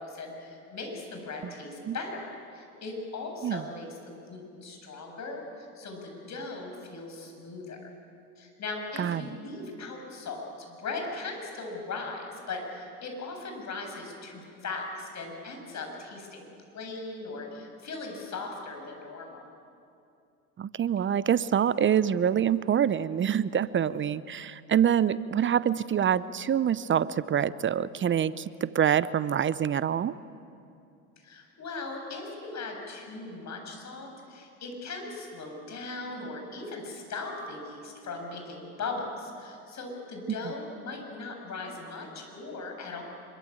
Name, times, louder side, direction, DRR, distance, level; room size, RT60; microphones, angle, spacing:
voice 1, 0.0-7.8 8.4-16.5 16.7-19.4 31.2-43.0, left 3 dB, 40° left, 3 dB, 7.8 m, -39 dB
voice 2, 20.6-30.1, right 9 dB, 30° right, 17 dB, 0.7 m, -26 dB
25.5 x 23.5 x 8.8 m, 2.6 s
hypercardioid pair, 70°, 42 cm